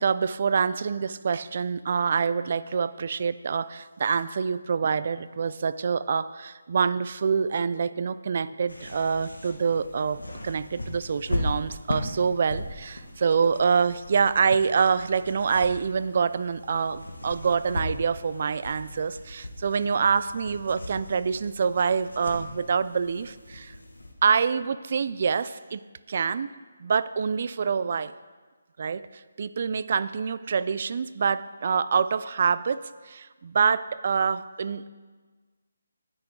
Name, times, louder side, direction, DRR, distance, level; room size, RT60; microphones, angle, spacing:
voice 1, 0.0-23.7 24.2-25.8 26.1-26.5 26.8-28.1 28.8-34.9, right 6 dB, 50° right, 15 dB, 0.4 m, -26 dB
sound 1, 8.7-24.1, left 1 dB, 90° left, 1.6 m, -38 dB
16.5 x 6.1 x 3.7 m, 1.4 s
figure-of-eight pair, 155°, 0 cm